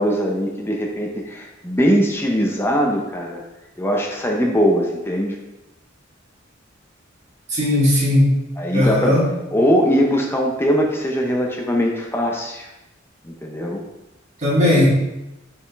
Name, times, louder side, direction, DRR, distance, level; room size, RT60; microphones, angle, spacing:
voice 1, 0.0-3.4 3.8-5.4 8.6-9.2 9.5-12.7 13.2-13.8, equal, 10° left, 0 dB, 0.7 m, -21 dB
voice 2, 7.5-8.4 8.7-9.2 14.4-14.9, left 1 dB, 35° right, -5 dB, 1.7 m, -17 dB
5.8 x 4.9 x 3.4 m, 0.95 s
head